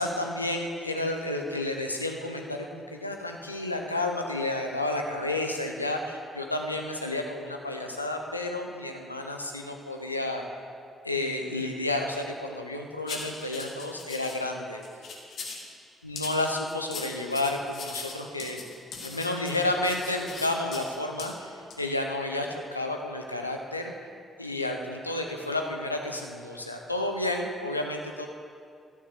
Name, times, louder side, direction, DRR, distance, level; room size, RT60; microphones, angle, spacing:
voice 1, 0.0-10.4 11.0-14.8 16.0-18.6 19.0-23.9 24.4-28.3, left 2 dB, 90° left, 3 dB, 0.6 m, -31 dB
sound 1, 13.1-14.4 14.8-15.7 16.2-20.9 21.2-21.3 21.7-21.8, left 4 dB, 55° left, 1.5 m, -40 dB
12.5 x 6.5 x 6.7 m, 2.3 s
figure-of-eight pair, 40°, 0 cm